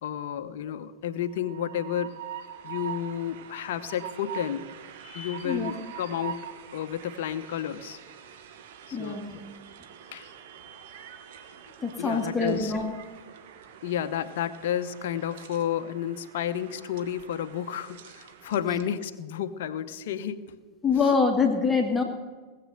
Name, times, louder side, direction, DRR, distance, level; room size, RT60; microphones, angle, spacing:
voice 1, 0.0-2.2 2.6-4.7 5.1-6.5 6.7-8.0 8.9-9.2 10.1-10.3 12.0-12.7 13.8-20.6, left 9 dB, 55° left, 10 dB, 0.8 m, -31 dB
Train, 1.2-19.0, right 9 dB, 55° right, 1.2 m, -44 dB
voice 2, 5.0-5.7 8.9-9.4 11.8-13.0 18.7-18.8 20.8-22.0, left 4 dB, 10° left, 2 dB, 1.9 m, -25 dB
19.0 x 7.7 x 6.5 m, 1.4 s
figure-of-eight pair, 90°, 0 cm